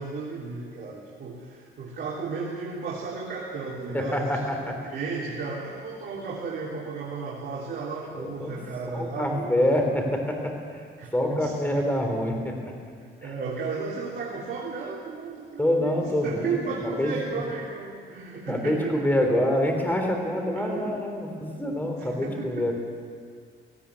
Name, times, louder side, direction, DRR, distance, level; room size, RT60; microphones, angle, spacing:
voice 1, 0.0-4.5 4.8-9.6 11.0-11.5 13.0-19.0 20.3-21.0 21.4-21.6 22.0-22.7, right 4 dB, 50° right, -4 dB, 3.3 m, -34 dB
voice 2, 3.9-4.8 8.2-8.5 8.9-10.8 11.1-12.7 15.6-17.4 18.5-22.7, left 1 dB, 10° left, 2 dB, 3.7 m, -26 dB
18.5 x 17.5 x 8.5 m, 2.1 s
cardioid pair, 120°, 21 cm